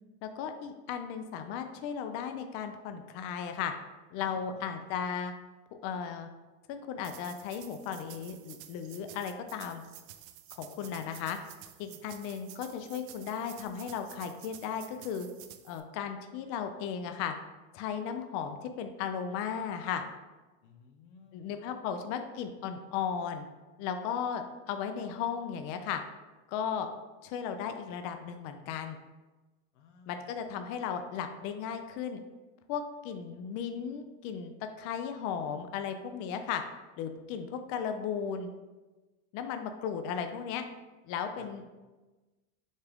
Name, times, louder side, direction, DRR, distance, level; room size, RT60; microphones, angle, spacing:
voice 1, 0.2-3.7 4.1-5.3 5.7-6.3 6.7-9.8 10.6-11.4 11.8-15.3 15.6-17.3 17.7-20.0 21.3-23.4 23.8-26.0 26.5-26.9 27.2-29.0 30.1-32.2 32.7-36.6 37.0-38.5 39.3-40.6 41.1-41.7, left 7 dB, 45° left, 7 dB, 0.4 m, -36 dB
sound 1, 7.0-15.8, right 12 dB, 70° right, 0.5 m, -51 dB
voice 2, 20.6-21.6 29.7-30.2 41.4-41.5, left 5 dB, 90° left, 6 dB, 0.7 m, -57 dB
6.4 x 2.3 x 3.4 m, 1.2 s
supercardioid pair, 135°, 34 cm